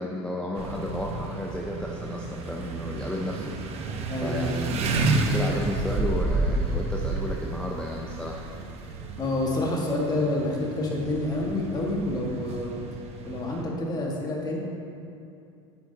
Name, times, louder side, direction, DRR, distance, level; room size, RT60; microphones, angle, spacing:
voice 1, 0.0-8.5, left 1 dB, 5° left, -2 dB, 0.7 m, -33 dB
sound 1, 0.5-13.6, right 3 dB, 45° right, 0.9 m, -31 dB
voice 2, 4.1-4.4 9.2-12.7 13.2-14.6, left 2 dB, 25° left, -2 dB, 1.8 m, -28 dB
8.9 x 8.1 x 2.9 m, 2.6 s
hypercardioid pair, 95°, 15 cm